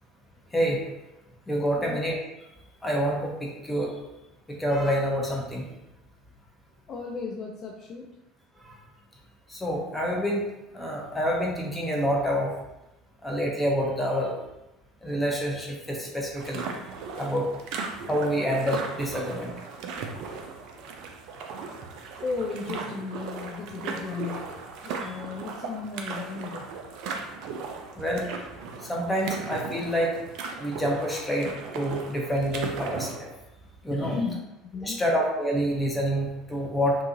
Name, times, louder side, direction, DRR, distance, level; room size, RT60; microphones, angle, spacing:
voice 1, 1.5-2.2 2.8-3.9 4.6-5.6 9.5-10.4 10.7-12.5 13.2-14.3 15.0-16.6 17.2-17.5 18.1-19.5 20.1-20.2 28.0-28.2 28.9-30.1 30.6-31.5 31.7-33.3 33.8-34.2 34.8-37.0, equal, 15° left, -1 dB, 0.7 m, -27 dB
voice 2, 6.9-8.1 22.2-24.5 24.8-26.7 33.9-34.4 34.7-35.0, left 4 dB, 40° left, -1 dB, 0.3 m, -34 dB
sound 1, 16.4-33.2, right 4 dB, 60° right, 0.3 m, -37 dB
2.6 x 2.4 x 2.5 m, 0.93 s
figure-of-eight pair, 65°, 0 cm